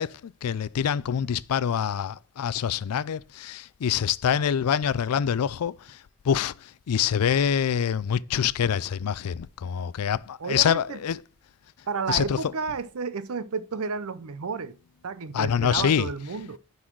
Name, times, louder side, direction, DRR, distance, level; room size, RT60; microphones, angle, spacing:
voice 1, 0.0-5.7 6.3-6.5 6.9-11.2 12.1-12.4 15.3-16.1, left 8 dB, 80° left, 0.4 m, -25 dB
voice 2, 10.4-11.0 11.9-14.7 15.0-16.6, right 5 dB, 70° right, 0.6 m, -31 dB
9.9 x 4.0 x 4.6 m
head